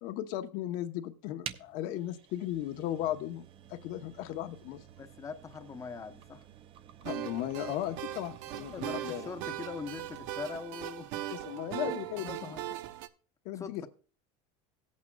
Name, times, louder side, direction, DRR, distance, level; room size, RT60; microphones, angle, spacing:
voice 1, 0.0-4.8 7.0-9.3 11.3-12.5 13.4-13.9, left 12 dB, 65° left, 0.9 m, -36 dB
sound 1, 1.4-10.6, right 9 dB, 35° right, 0.6 m, -51 dB
voice 2, 5.0-6.4 8.6-11.2 11.8-12.7 13.6-13.9, left 5 dB, 20° left, 0.9 m, -42 dB
sound 2, 7.0-13.1, right 13 dB, 75° right, 0.7 m, -39 dB
17.0 x 8.5 x 2.3 m
cardioid pair, 145°, 15 cm